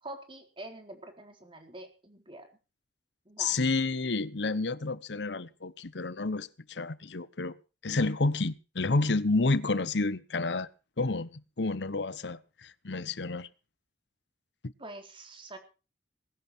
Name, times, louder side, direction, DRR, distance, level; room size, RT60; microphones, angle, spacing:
voice 1, 0.0-2.5 3.3-3.6 7.9-8.0 14.8-15.6, right 2 dB, 30° right, 4.0 m, -45 dB
voice 2, 3.4-7.5 7.8-10.7 11.0-13.5, left 3 dB, 75° left, 0.9 m, -30 dB
20.5 x 11.0 x 4.4 m
head